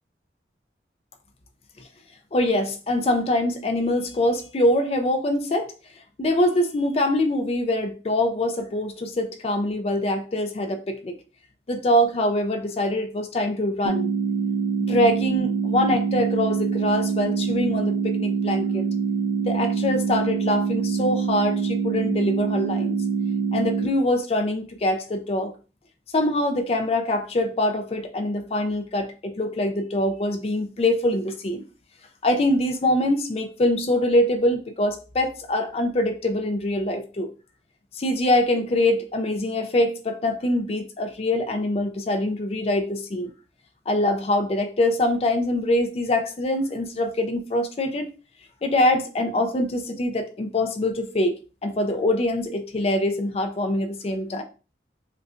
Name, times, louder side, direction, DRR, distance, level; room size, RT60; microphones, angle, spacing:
voice 1, 2.3-5.7 6.2-11.1 11.7-14.1 14.8-18.8 19.4-23.0 23.5-25.5 26.1-31.7 32.2-37.3 37.9-43.3 43.9-48.1 48.6-54.4, left 1 dB, 35° left, 0.4 m, -24 dB
sound 1, 13.8-23.9, right 5 dB, 85° right, 0.4 m, -25 dB
5.2 x 2.2 x 2.5 m
head